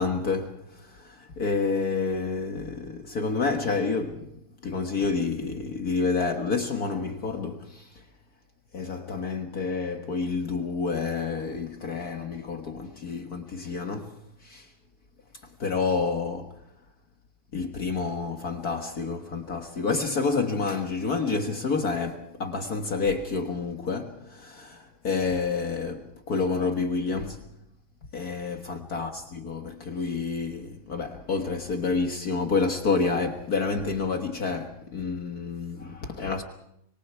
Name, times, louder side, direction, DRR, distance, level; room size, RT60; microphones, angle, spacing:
voice 1, 0.0-4.4 4.6-8.0 8.7-14.7 15.6-16.6 17.5-27.5 28.1-36.4, left 4 dB, 50° left, 1.9 m, -29 dB
26.0 x 23.0 x 4.7 m
omnidirectional pair, 2.2 m